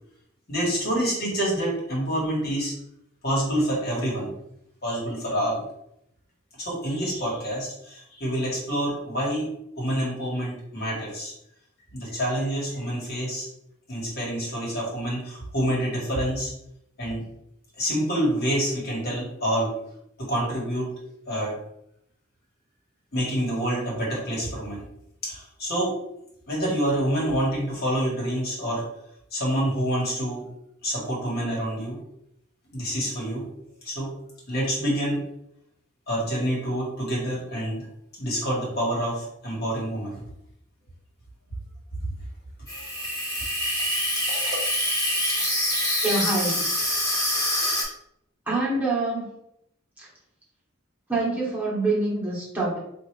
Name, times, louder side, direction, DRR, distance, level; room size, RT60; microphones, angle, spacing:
voice 1, 0.5-2.7 3.2-4.4 4.8-5.6 6.6-9.5 9.8-11.3 11.9-13.5 13.9-16.5 17.0-17.2 17.8-19.7 20.2-20.9 21.3-21.6 23.1-24.8 25.2-25.9 26.5-28.8 29.3-30.4 30.8-32.0 32.7-33.4 33.8-34.1 34.5-35.2 36.1-37.8 38.2-40.2, equal, 55° left, -4 dB, 1.6 m, -27 dB
Water tap faucet / Sink (filling or washing), 42.7-47.8, left 1 dB, 20° left, 1.2 m, -25 dB
voice 2, 46.0-46.7 48.5-49.3 50.0-50.1 51.1-52.8, right 2 dB, 10° right, -7 dB, 1.3 m, -26 dB
4.5 x 2.6 x 3.3 m, 0.76 s
head